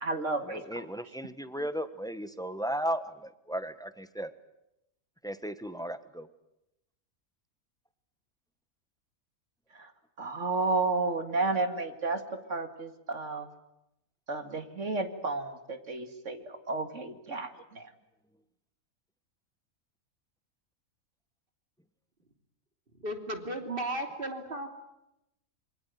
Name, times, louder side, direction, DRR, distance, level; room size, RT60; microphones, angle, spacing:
voice 1, 0.0-0.9 1.2-1.3 9.7-9.9 10.2-12.2 12.5-13.5 14.3-17.9, right 3 dB, 60° right, 8 dB, 2.5 m, -32 dB
voice 2, 0.7-4.3 5.2-6.3, equal, 5° left, 12 dB, 1.1 m, -35 dB
voice 3, 23.0-24.7, right 1 dB, 40° right, 5 dB, 3.4 m, -35 dB
26.5 x 24.5 x 9.2 m, 0.87 s
omnidirectional pair, 1.5 m